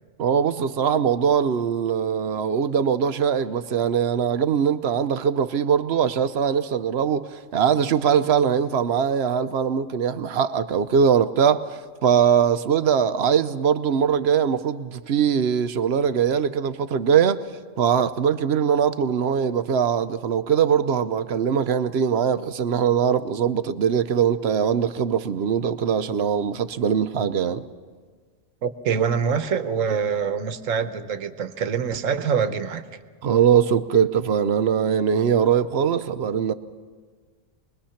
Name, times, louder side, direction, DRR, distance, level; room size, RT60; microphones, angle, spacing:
voice 1, 0.2-17.4 17.8-27.6 33.2-36.5, right 7 dB, 60° right, 0.9 m, -21 dB
voice 2, 28.6-32.8, right 6 dB, 80° right, 1.3 m, -25 dB
25.0 x 21.0 x 5.8 m
omnidirectional pair, 1.3 m